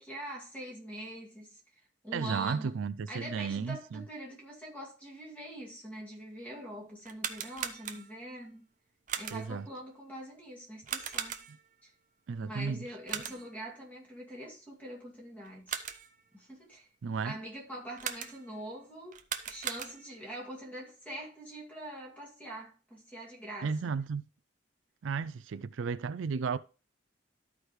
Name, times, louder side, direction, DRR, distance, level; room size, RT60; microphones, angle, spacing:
voice 1, 0.0-1.6 2.0-2.7 3.1-8.7 9.2-11.4 11.8-11.9 12.4-15.8 16.3-16.9 17.2-19.2 19.5-23.9, right 1 dB, 10° left, 2.3 m, -44 dB
voice 2, 2.1-4.0 9.3-9.7 11.5-11.6 12.3-12.9 17.0-17.4 23.6-24.2 25.0-26.6, right 5 dB, 85° right, 0.4 m, -34 dB
sound 1, 7.0-8.3 9.1-9.6 10.9-11.7 13.1-13.6 15.4-16.2 18.0-18.6 19.1-20.3, right 8 dB, 40° right, 0.7 m, -39 dB
13.0 x 4.8 x 3.1 m
head